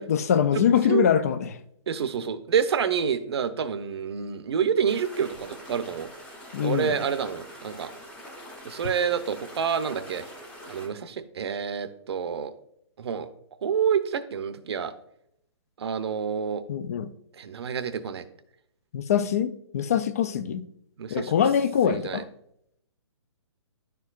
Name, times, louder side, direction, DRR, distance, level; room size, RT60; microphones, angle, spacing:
voice 1, 0.0-1.5 6.5-7.0 16.7-17.1 18.9-20.6 21.1-22.2, left 8 dB, 30° left, 0.3 m, -23 dB
voice 2, 1.9-6.1 6.6-7.9 8.6-10.2 10.7-12.5 13.0-13.3 13.6-14.9 15.8-16.6 17.4-18.2 21.0-21.3 21.9-22.2, right 7 dB, 60° right, 0.6 m, -28 dB
sound 1, 4.9-10.9, equal, 5° left, 0.8 m, -44 dB
10.5 x 4.5 x 2.4 m
hypercardioid pair, 165°, 16 cm